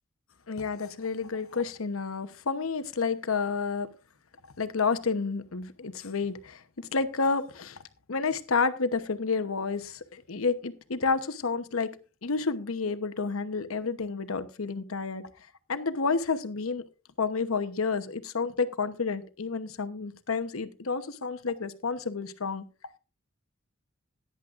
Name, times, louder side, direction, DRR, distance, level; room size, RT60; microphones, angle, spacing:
voice 1, 0.5-3.9 4.4-7.8 8.1-11.9 12.2-15.3 15.7-16.8 17.2-22.6, left 4 dB, 90° left, 11 dB, 1.0 m, -30 dB
17.0 x 10.5 x 2.5 m, 0.31 s
head